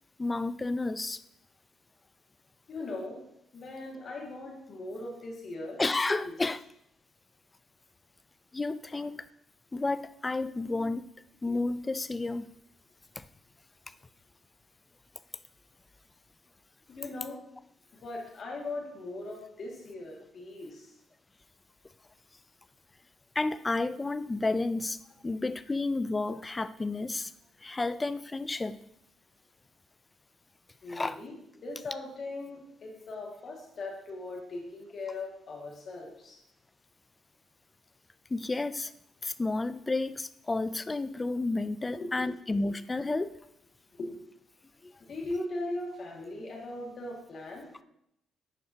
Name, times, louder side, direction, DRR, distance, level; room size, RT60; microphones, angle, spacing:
voice 1, 0.2-1.2 5.8-6.6 8.5-9.2 9.7-11.1 11.4-12.5 13.2-13.3 23.4-25.0 25.2-27.3 27.6-28.8 30.9-31.2 38.3-38.9 39.2-43.4 44.8-44.9, left 3 dB, 20° left, 14 dB, 0.3 m, -31 dB
voice 2, 2.7-3.2 3.5-5.8 6.1-6.4 16.9-17.4 18.0-20.9 30.8-31.3 31.6-36.4 41.9-42.3 43.9-44.1 45.0-47.7, left 2 dB, 55° left, 0 dB, 2.0 m, -39 dB
10.5 x 4.5 x 2.8 m, 0.77 s
cardioid pair, 90°, 0 cm